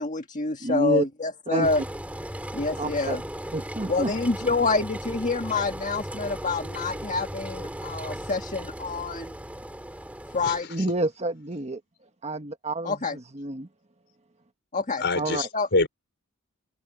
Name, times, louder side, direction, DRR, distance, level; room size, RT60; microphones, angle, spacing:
voice 1, 0.0-1.8 2.5-3.2 3.9-9.3 10.3-10.7 12.8-13.2 14.7-15.0 15.5-15.7, left 3 dB, 35° left, 1.7 m, -27 dB
voice 2, 0.6-1.1 1.5-1.7 2.8-3.2 3.5-4.1 10.7-11.8 12.2-13.7 15.1-15.5, right 1 dB, 30° right, 1.4 m, -29 dB
Engine, 1.6-10.6, right 1 dB, 5° right, 2.4 m, -36 dB
voice 3, 15.0-15.9, left 3 dB, 55° left, 4.6 m, -25 dB
open air
head